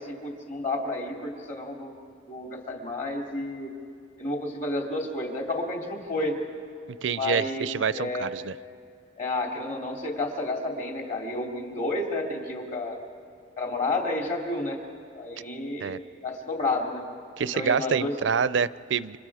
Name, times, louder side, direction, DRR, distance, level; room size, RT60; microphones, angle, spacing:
voice 1, 0.0-2.0 2.3-3.7 4.2-6.4 7.1-8.3 9.2-13.0 13.6-14.8 15.1-17.0 17.5-18.1, left 2 dB, 45° left, 1 dB, 3.1 m, -31 dB
voice 2, 7.0-8.5 15.8-16.0 17.4-19.2, right 6 dB, 85° right, 17 dB, 0.5 m, -27 dB
29.5 x 26.5 x 4.9 m, 2.4 s
head